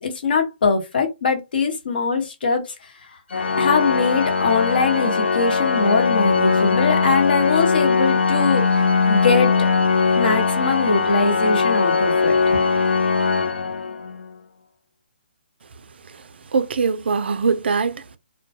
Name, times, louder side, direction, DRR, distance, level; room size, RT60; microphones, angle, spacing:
voice 1, 0.0-2.6 3.6-9.7 10.0-12.6, left 4 dB, 55° left, 0.9 m, -22 dB
Organ, 3.3-14.3, left 4 dB, 80° left, 0.5 m, -20 dB
voice 2, 16.5-18.2, right 5 dB, 70° right, 0.4 m, -22 dB
2.2 x 2.1 x 2.6 m
hypercardioid pair, 155°, 6 cm